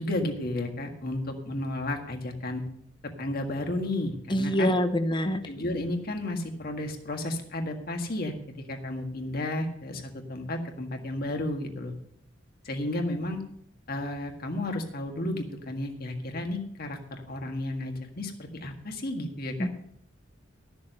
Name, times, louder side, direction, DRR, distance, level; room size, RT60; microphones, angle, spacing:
voice 1, 0.0-2.6 3.2-4.7 5.5-8.3 8.7-11.9 12.7-13.4 13.9-19.7, left 1 dB, 50° left, 4 dB, 1.7 m, -32 dB
voice 2, 4.3-5.4 19.6-19.7, equal, 25° left, 10 dB, 0.8 m, -25 dB
13.0 x 7.0 x 6.7 m, 0.68 s
head